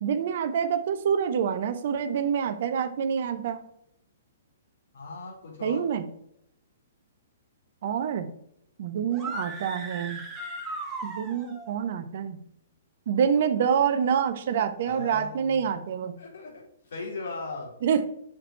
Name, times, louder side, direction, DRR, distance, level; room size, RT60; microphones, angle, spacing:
voice 1, 0.0-3.6 5.6-6.0 7.8-8.3 8.8-10.2 11.0-12.4 13.1-16.1 17.8-18.1, right 7 dB, 50° right, 10 dB, 0.7 m, -26 dB
voice 2, 4.9-5.8 14.9-15.7 16.2-17.7, left 3 dB, 60° left, -2 dB, 3.0 m, -38 dB
sound 1, 9.1-11.7, right 2 dB, 15° right, 1.7 m, -37 dB
6.1 x 5.0 x 4.3 m, 0.73 s
figure-of-eight pair, 115°, 0 cm